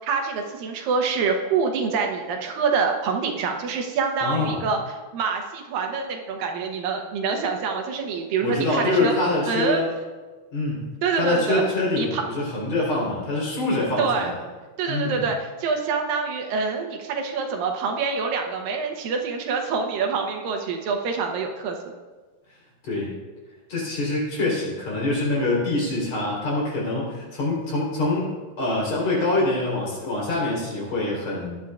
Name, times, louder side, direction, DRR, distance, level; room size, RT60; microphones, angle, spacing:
voice 1, 0.0-9.1 9.5-9.8 11.0-11.7 12.0-12.2 14.0-14.3 14.8-21.9, right 5 dB, 75° right, 3 dB, 2.7 m, -26 dB
voice 2, 4.2-4.6 8.4-9.9 10.5-10.9 11.2-14.3 14.9-15.2 22.8-23.1 23.7-28.3 28.6-31.6, left 2 dB, 50° left, -4 dB, 4.9 m, -25 dB
18.0 x 11.0 x 2.4 m, 1.3 s
omnidirectional pair, 4.1 m